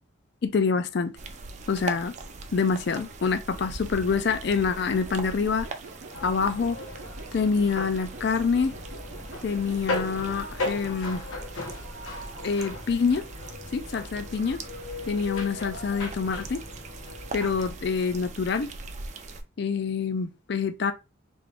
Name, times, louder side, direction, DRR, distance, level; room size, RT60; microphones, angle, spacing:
voice 1, 0.4-1.1 1.7-2.1 2.5-5.7 6.2-6.8 7.3-8.7 9.4-11.2 12.4-13.2 13.7-14.6 15.1-16.6 17.3-18.7 19.6-20.9, left 5 dB, 55° left, 0.4 m, -26 dB
sound 1, 1.2-19.4, right 3 dB, 35° right, 0.4 m, -42 dB
sound 2, 4.1-10.4, right 3 dB, 65° right, 0.8 m, -46 dB
sound 3, 6.1-17.7, left 2 dB, 85° left, 1.2 m, -37 dB
3.5 x 2.5 x 3.3 m
head